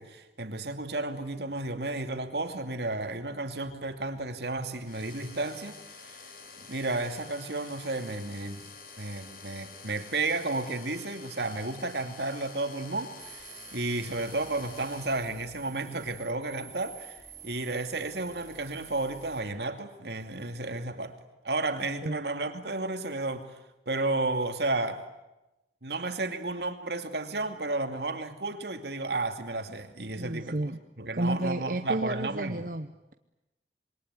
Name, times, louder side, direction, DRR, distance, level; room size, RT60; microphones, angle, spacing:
voice 1, 0.0-6.2 6.7-8.7 9.0-13.4 13.7-21.2 21.4-23.6 23.9-25.0 25.8-30.6 31.0-32.6, right 2 dB, 70° right, 2.6 m, -32 dB
sound 1, 4.8-15.2, left 5 dB, 55° left, 4.6 m, -48 dB
sound 2, 13.2-19.4, right 6 dB, 15° right, 4.1 m, -49 dB
voice 2, 30.2-30.8 31.1-33.1, right 1 dB, 50° right, 0.9 m, -31 dB
26.5 x 23.0 x 9.8 m
head